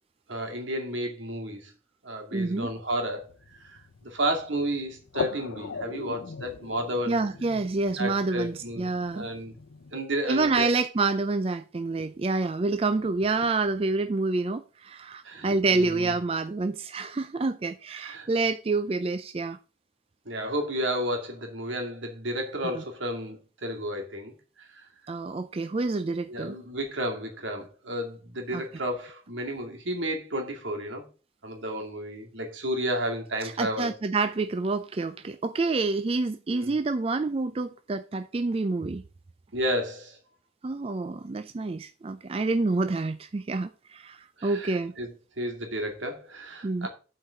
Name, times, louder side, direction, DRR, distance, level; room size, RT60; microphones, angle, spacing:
voice 1, 0.3-1.7 2.0-7.2 8.0-8.9 9.1-9.5 9.9-10.7 15.2-16.1 17.9-18.3 20.3-24.9 26.3-31.1 31.4-33.9 36.5-36.8 39.5-40.2 44.4-46.9, right 1 dB, 80° right, 2.5 m, -32 dB
voice 2, 2.3-2.7 7.1-9.3 10.3-19.6 25.1-26.6 28.5-28.6 33.4-39.0 40.6-44.9 46.6-46.9, right 3 dB, 30° right, 0.4 m, -28 dB
sound 1, 3.0-10.0, left 4 dB, 90° left, 0.7 m, -40 dB
8.4 x 4.6 x 6.4 m
head